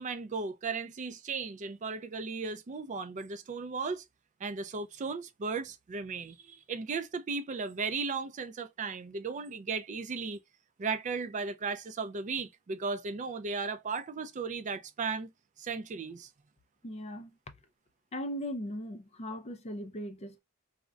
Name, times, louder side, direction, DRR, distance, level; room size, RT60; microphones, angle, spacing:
voice 1, 0.0-4.0 4.4-10.4 10.8-15.3 15.6-16.3, right 4 dB, 35° right, 0.4 m, -36 dB
voice 2, 16.8-17.3 18.1-20.4, equal, 30° left, 0.4 m, -38 dB
3.6 x 2.1 x 2.2 m
head